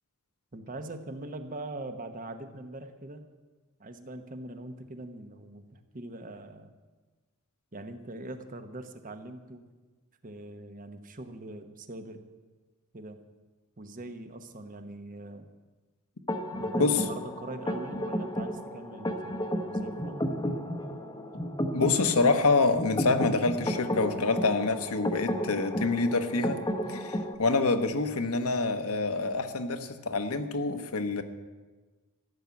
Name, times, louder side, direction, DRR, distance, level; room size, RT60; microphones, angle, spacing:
voice 1, 0.5-3.2 3.8-6.7 7.7-9.6 10.2-12.2 12.9-13.2 13.8-15.5 16.6-20.5, right 2 dB, 40° right, 7 dB, 1.1 m, -42 dB
sound 1, 16.3-27.3, equal, 20° left, 0.9 m, -33 dB
voice 2, 21.7-26.6 26.9-31.2, left 3 dB, 75° left, 7 dB, 1.1 m, -26 dB
14.5 x 7.3 x 9.5 m, 1.3 s
head